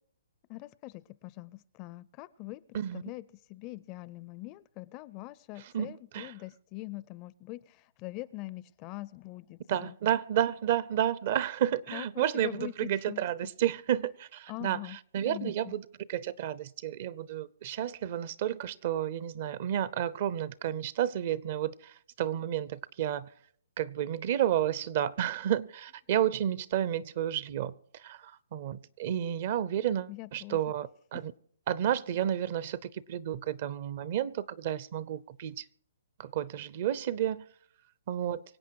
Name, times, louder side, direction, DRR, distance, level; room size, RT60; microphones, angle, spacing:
voice 1, 0.5-2.6 2.9-9.9 11.9-13.5 14.5-15.0 15.2-15.7 30.1-30.6, left 19 dB, 30° left, 0.5 m, -43 dB
voice 2, 5.6-6.3 9.7-15.8 16.1-23.3 23.8-31.3 31.7-35.6 36.2-37.5 38.1-38.4, right 10 dB, 45° right, 0.7 m, -31 dB
25.0 x 8.4 x 4.7 m
hypercardioid pair, 140°, 0 cm